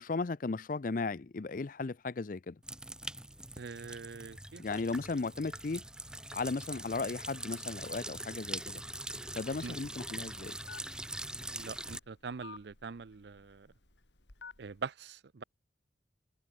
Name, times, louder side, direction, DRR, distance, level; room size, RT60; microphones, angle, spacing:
voice 1, 0.0-2.6 4.6-5.8 6.3-8.8 9.4-10.6, left 3 dB, 45° left, 0.5 m, -36 dB
sound 1, 2.6-12.0, right 1 dB, 5° right, 1.9 m, -43 dB
voice 2, 3.6-4.6 9.6-9.8 11.4-13.7 14.6-15.4, right 5 dB, 65° right, 0.5 m, -43 dB
Telephone, 9.5-14.8, left 4 dB, 75° left, 2.9 m, -54 dB
open air
head